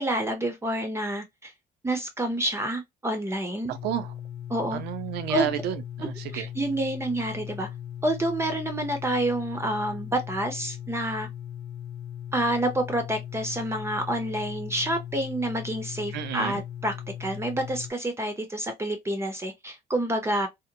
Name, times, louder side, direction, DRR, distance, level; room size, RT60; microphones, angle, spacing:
voice 1, 0.0-1.5 1.8-3.7 4.5-4.8 5.3-5.5 6.0-7.7 8.0-11.3 12.3-16.9 17.2-20.5, right 1 dB, 15° right, 0.6 m, -28 dB
sound 1, 3.7-17.9, left 10 dB, 85° left, 0.6 m, -38 dB
voice 2, 3.7-4.1 4.7-6.4 16.1-16.6, right 11 dB, 80° right, 0.5 m, -31 dB
2.8 x 2.1 x 2.6 m
cardioid pair, 110°, 17 cm